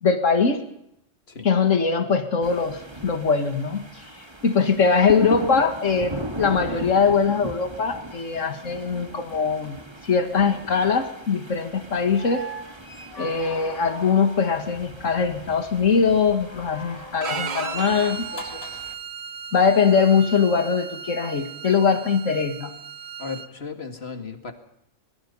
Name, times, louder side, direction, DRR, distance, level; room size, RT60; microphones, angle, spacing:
voice 1, 0.0-0.6 1.4-3.9 4.4-9.8 10.0-12.5 13.2-18.7 19.5-22.8, left 5 dB, 80° left, 8 dB, 2.3 m, -22 dB
sound 1, 2.4-18.9, right 2 dB, 20° right, 1.8 m, -38 dB
sound 2, 12.1-14.6 16.4-18.9 20.5-20.6, equal, 30° left, 2.1 m, -38 dB
Bowed string instrument, 17.2-23.5, right 7 dB, 60° right, 1.3 m, -36 dB
voice 2, 23.2-24.5, left 4 dB, 55° left, 7 dB, 2.6 m, -35 dB
24.5 x 21.5 x 5.6 m, 0.78 s
omnidirectional pair, 1.3 m